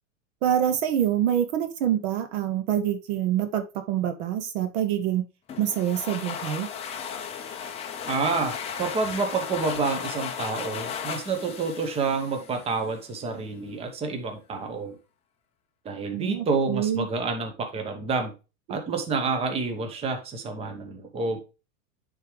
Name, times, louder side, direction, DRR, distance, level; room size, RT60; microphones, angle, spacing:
voice 1, 0.4-5.2 5.6-6.7 16.1-17.1, right 10 dB, 50° right, 9 dB, 0.8 m, -26 dB
sound 1, 5.5-13.0, left 7 dB, 15° left, 0.5 m, -35 dB
voice 2, 8.0-15.0 15.8-18.3 18.7-21.4, right 4 dB, 15° right, 5 dB, 0.8 m, -28 dB
9.2 x 3.7 x 3.1 m, 0.30 s
supercardioid pair, 140°, 41 cm